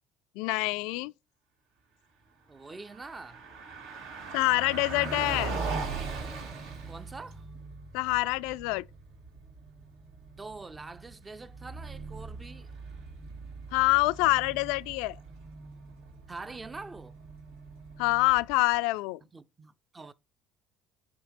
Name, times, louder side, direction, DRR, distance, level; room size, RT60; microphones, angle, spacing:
voice 1, 0.4-1.1 4.3-5.5 7.9-8.8 13.7-15.2 18.0-19.2, left 22 dB, 85° left, 0.3 m, -26 dB
voice 2, 2.5-3.4 6.9-7.5 10.4-12.7 16.3-17.2 19.2-20.1, right 3 dB, 20° right, 0.5 m, -44 dB
Car passing by, 2.6-18.7, right 4 dB, 85° right, 2.5 m, -40 dB
sound 1, 6.4-12.4, right 4 dB, 60° right, 3.3 m, -54 dB
8.0 x 2.8 x 5.1 m
cardioid pair, 120°, 0 cm